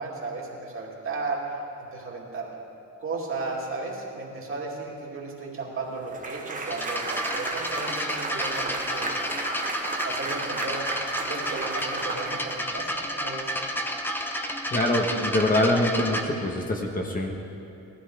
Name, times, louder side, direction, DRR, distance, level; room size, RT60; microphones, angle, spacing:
voice 1, 0.0-1.5 1.9-2.5 3.0-9.2 10.0-10.9 11.2-13.5, right 3 dB, 45° right, -2 dB, 2.5 m, -34 dB
sound 1, 6.1-12.9, right 3 dB, 25° right, 1.1 m, -34 dB
sound 2, 6.7-16.2, equal, 5° left, 0.9 m, -31 dB
voice 2, 14.7-17.4, left 1 dB, 25° left, 1 dB, 1.2 m, -24 dB
18.0 x 14.0 x 4.7 m, 2.8 s
wide cardioid pair, 170°, 31 cm